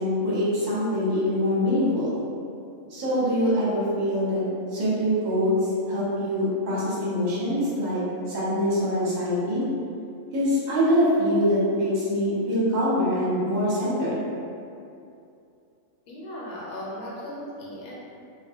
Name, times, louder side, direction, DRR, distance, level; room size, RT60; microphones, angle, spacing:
voice 1, 0.0-2.1 2.9-4.4 4.7-8.0 8.3-9.6 10.3-14.2, equal, 40° right, -8 dB, 0.8 m, -24 dB
voice 2, 16.1-18.0, left 1 dB, 80° left, -6 dB, 1.0 m, -37 dB
2.2 x 2.1 x 3.4 m, 2.6 s
omnidirectional pair, 1.4 m